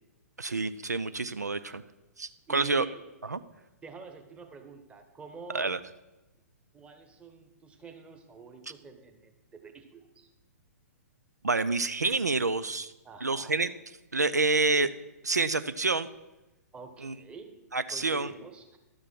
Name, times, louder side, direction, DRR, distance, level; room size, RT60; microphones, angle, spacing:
voice 1, 0.4-1.8 2.2-2.9 3.2-3.4 5.5-5.8 11.4-12.9 13.2-13.7 14.1-14.9 15.2-16.1 17.0-17.1 17.7-18.3, right 3 dB, 80° right, 14 dB, 0.5 m, -28 dB
voice 2, 2.5-3.0 3.8-5.7 6.7-10.3 13.0-13.6 16.7-17.5 17.9-18.8, right 5 dB, 10° right, 6 dB, 1.2 m, -47 dB
12.0 x 7.4 x 6.3 m, 1.0 s
figure-of-eight pair, 115°, 9 cm